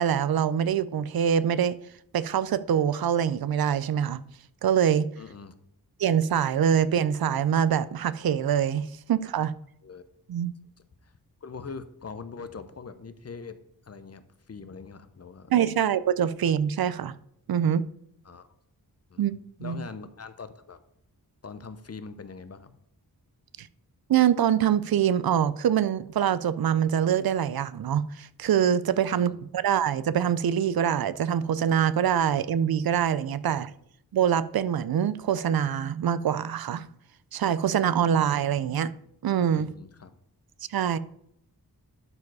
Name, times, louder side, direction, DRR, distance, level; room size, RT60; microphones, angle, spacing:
voice 1, 0.0-1.8 2.1-4.2 4.6-5.1 6.0-9.5 10.3-10.5 15.5-17.1 17.5-17.8 19.2-19.3 19.6-19.8 23.6-23.7 24.1-33.7 34.1-36.9 37.3-38.9 39.2-39.7 40.7-41.0, right 9 dB, 70° right, 0.5 m, -24 dB
voice 2, 5.2-5.5 9.8-10.0 11.0-11.1 11.4-13.6 13.8-15.5 18.2-18.5 19.1-20.8 21.4-22.8 29.1-29.4 39.6-40.2, left 5 dB, 40° left, 0.7 m, -42 dB
12.0 x 4.8 x 4.7 m
wide cardioid pair, 105°, 38 cm